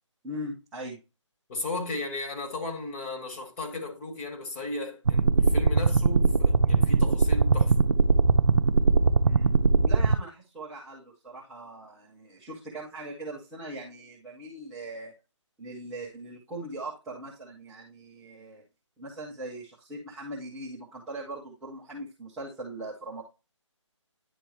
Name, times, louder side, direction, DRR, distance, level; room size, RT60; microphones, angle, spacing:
voice 1, 0.2-1.0 9.2-9.6 9.8-15.1 15.6-18.6 19.0-23.2, right 1 dB, ahead, 0.3 m, -40 dB
voice 2, 1.5-7.9, left 2 dB, 25° left, 1.4 m, -35 dB
sound 1, 5.1-10.2, right 3 dB, 75° right, 0.5 m, -21 dB
10.0 x 3.4 x 2.9 m
figure-of-eight pair, 150°, 16 cm